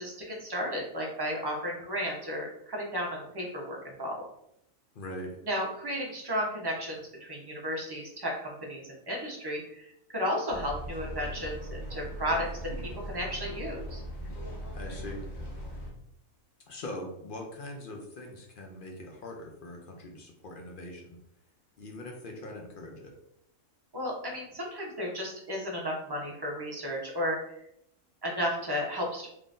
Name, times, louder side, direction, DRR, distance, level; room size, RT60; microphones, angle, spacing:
voice 1, 0.0-4.2 5.4-12.5 13.1-14.0 23.9-27.4 28.2-29.3, equal, 25° right, -2 dB, 0.6 m, -33 dB
voice 2, 4.9-5.4 14.7-15.2 16.7-21.2 21.8-23.1, left 1 dB, 60° left, 1 dB, 0.5 m, -42 dB
sound 1, 10.5-15.9, equal, 40° left, 1.1 m, -39 dB
3.7 x 3.1 x 2.5 m, 0.76 s
omnidirectional pair, 1.5 m